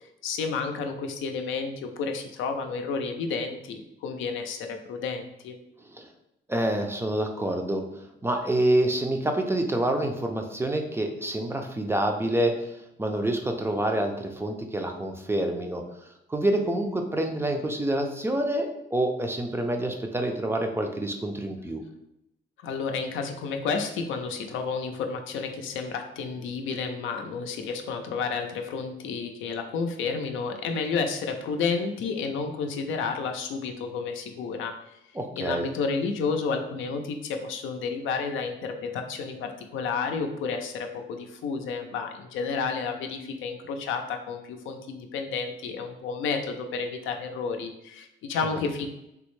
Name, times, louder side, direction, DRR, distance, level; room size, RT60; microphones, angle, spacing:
voice 1, 0.2-5.6 22.6-35.0 35.4-48.9, left 5 dB, 80° left, 5 dB, 0.5 m, -31 dB
voice 2, 6.5-15.8 16.3-21.8 35.1-35.7, right 1 dB, 10° right, 3 dB, 0.4 m, -27 dB
3.4 x 2.0 x 3.1 m, 0.83 s
cardioid pair, 90°, 20 cm